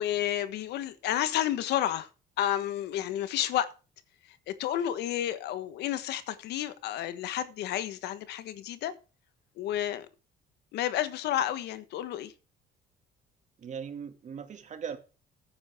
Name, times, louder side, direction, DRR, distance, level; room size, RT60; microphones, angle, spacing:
voice 1, 0.0-2.1 2.4-3.7 4.5-8.9 9.6-10.1 10.7-12.3, left 11 dB, 80° left, 1.4 m, -31 dB
voice 2, 13.6-15.0, right 7 dB, 45° right, 2.4 m, -39 dB
14.0 x 9.7 x 3.7 m
cardioid pair, 110°, 17 cm